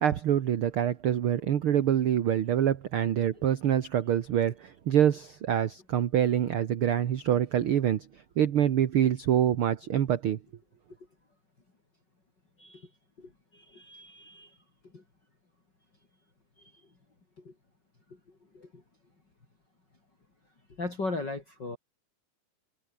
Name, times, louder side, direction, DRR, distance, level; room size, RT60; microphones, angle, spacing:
voice 1, 0.0-8.0 8.4-10.4, right 10 dB, 60° right, 1.6 m, -25 dB
voice 2, 12.6-12.9 13.2-15.0 16.6-16.9 17.4-17.5 18.1-18.8 20.7-21.8, left 3 dB, 30° left, 4.9 m, -39 dB
omnidirectional pair, 3.8 m